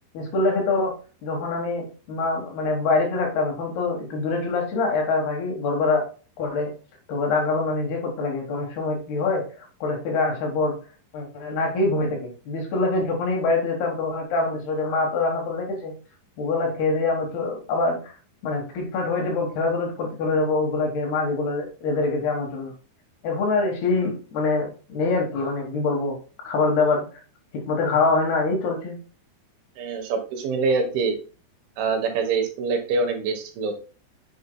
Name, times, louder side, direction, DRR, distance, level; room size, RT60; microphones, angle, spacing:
voice 1, 0.1-1.0 1.2-6.0 6.4-6.7 7.1-9.4 9.8-10.8 11.1-15.9 16.4-18.1 18.4-22.7 23.2-26.2 26.4-27.1 27.7-29.0, left 3 dB, 65° left, 1 dB, 3.1 m, -24 dB
voice 2, 29.8-31.2 31.8-33.8, right 4 dB, 80° right, 5 dB, 3.6 m, -25 dB
8.3 x 7.3 x 2.2 m, 0.36 s
omnidirectional pair, 5.5 m